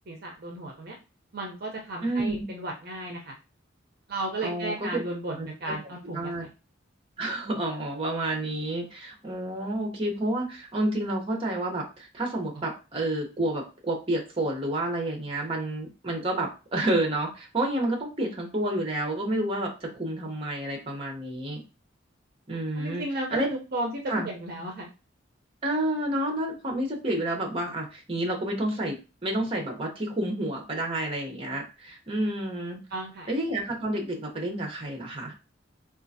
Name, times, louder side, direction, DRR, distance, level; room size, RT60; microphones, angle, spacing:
voice 1, 0.1-0.9 1.3-3.3 4.1-6.3 22.5-23.9 24.2-24.9 32.9-33.3, right 2 dB, 55° right, 1 dB, 0.7 m, -34 dB
voice 2, 2.0-2.5 4.4-5.0 5.3-5.7 6.1-6.5 7.2-21.6 22.5-23.0 23.3-23.5 24.1-24.3 25.6-32.8 33.3-35.3, right 1 dB, 30° right, 1 dB, 0.9 m, -29 dB
3.7 x 2.5 x 2.7 m, 0.30 s
head